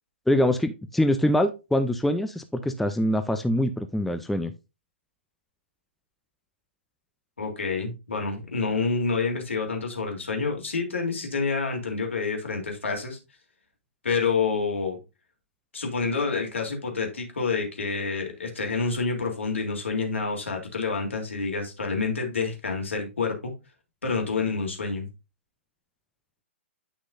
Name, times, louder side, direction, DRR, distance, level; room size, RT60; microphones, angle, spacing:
voice 1, 0.3-4.5, left 1 dB, ahead, 8 dB, 0.5 m, -24 dB
voice 2, 7.4-13.2 14.0-15.0 15.7-23.5 24.0-25.1, left 4 dB, 75° left, 2 dB, 3.2 m, -28 dB
9.6 x 6.2 x 2.6 m, 0.26 s
figure-of-eight pair, 120°, 7 cm